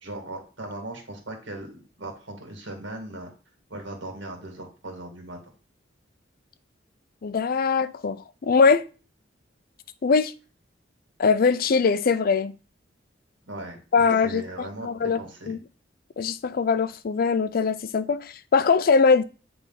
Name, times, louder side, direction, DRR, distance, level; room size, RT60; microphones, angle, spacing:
voice 1, 0.0-3.3 3.7-5.4 13.5-15.6, right 1 dB, 90° right, 2.1 m, -38 dB
voice 2, 7.2-8.9 10.0-10.3 11.2-12.5 13.9-15.2 15.5-15.6 16.2-19.2, left 5 dB, 50° left, 0.4 m, -22 dB
8.3 x 3.4 x 4.1 m
head